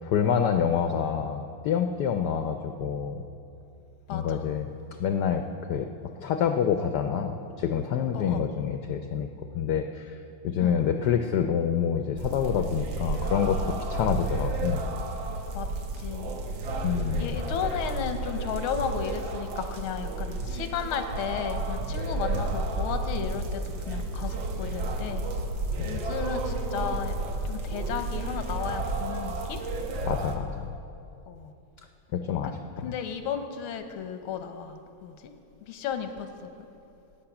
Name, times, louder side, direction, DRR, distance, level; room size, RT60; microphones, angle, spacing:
voice 1, 0.0-3.2 4.1-4.7 5.0-5.4 5.7-5.9 6.2-9.3 9.5-10.2 10.4-14.8 16.8-17.3 25.8-26.0 30.0-30.7 32.1-32.6, left 8 dB, 70° left, 6 dB, 1.0 m, -27 dB
voice 2, 4.1-4.4 8.1-8.5 10.6-10.7 15.5-15.7 16.0-16.4 17.2-25.2 25.8-27.2 27.4-29.6 31.3-31.5 32.4-32.5 32.8-35.3 35.7-36.7, left 7 dB, 90° left, 7 dB, 1.7 m, -34 dB
sound 1, 12.2-30.3, right 2 dB, 70° right, 1.7 m, -31 dB
17.5 x 7.6 x 5.9 m, 2.6 s
omnidirectional pair, 2.3 m